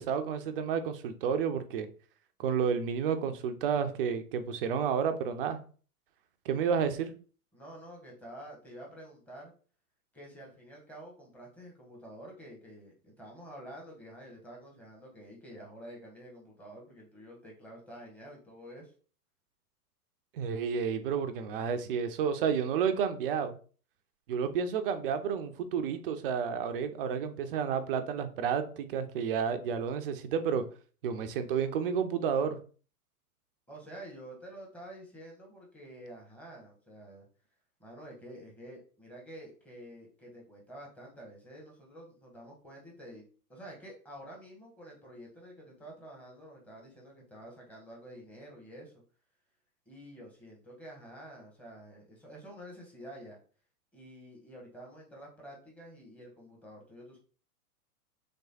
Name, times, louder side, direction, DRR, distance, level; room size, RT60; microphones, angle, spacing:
voice 1, 0.0-1.9 2.4-5.6 6.5-7.1 20.3-23.6 24.3-30.6 31.0-32.6, right 7 dB, 40° right, 8 dB, 0.5 m, -31 dB
voice 2, 7.5-9.5 10.1-18.9 33.7-37.3 37.8-43.2 43.5-48.9 49.9-53.4 53.9-57.2, right 1 dB, 5° left, -3 dB, 1.0 m, -49 dB
3.2 x 3.1 x 2.7 m, 0.39 s
figure-of-eight pair, 105°, 46 cm